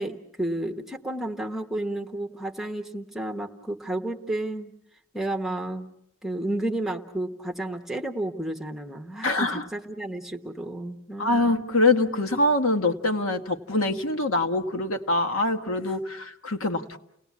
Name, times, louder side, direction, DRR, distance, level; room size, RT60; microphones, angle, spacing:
voice 1, 0.0-4.7 5.1-5.9 6.2-11.5, right 1 dB, ahead, 5 dB, 1.0 m, -31 dB
voice 2, 9.2-9.7 11.2-17.0, left 2 dB, 85° left, 5 dB, 1.5 m, -24 dB
30.0 x 18.5 x 8.4 m, 0.77 s
head